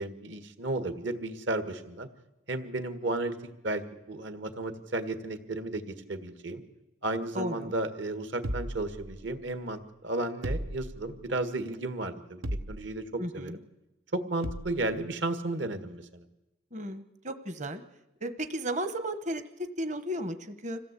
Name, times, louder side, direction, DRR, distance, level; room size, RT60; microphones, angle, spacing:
voice 1, 0.0-2.1 2.5-3.4 3.6-6.6 7.0-12.4 12.7-13.5 14.1-16.2, right 2 dB, 65° right, 8 dB, 1.9 m, -33 dB
voice 2, 7.3-7.7 13.2-13.6 16.7-17.8 18.2-20.8, right 1 dB, 35° right, 9 dB, 1.2 m, -34 dB
sound 1, 8.4-9.5 10.4-11.3 12.4-13.1 14.4-14.9, right 1 dB, 85° right, 1.1 m, -36 dB
26.5 x 16.5 x 8.4 m, 0.99 s
head